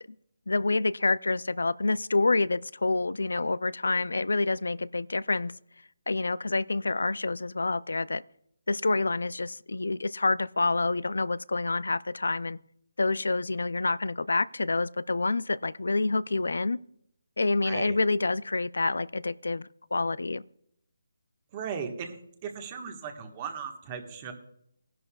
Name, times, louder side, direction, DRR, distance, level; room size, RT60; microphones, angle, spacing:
voice 1, 0.5-5.5 6.1-8.2 8.7-12.6 13.0-16.8 17.4-20.4, left 3 dB, 90° left, 0.4 m, -27 dB
voice 2, 17.6-18.0 21.5-24.3, right 6 dB, 25° right, 1.4 m, -37 dB
18.0 x 11.0 x 2.3 m
hypercardioid pair, 170°, 0 cm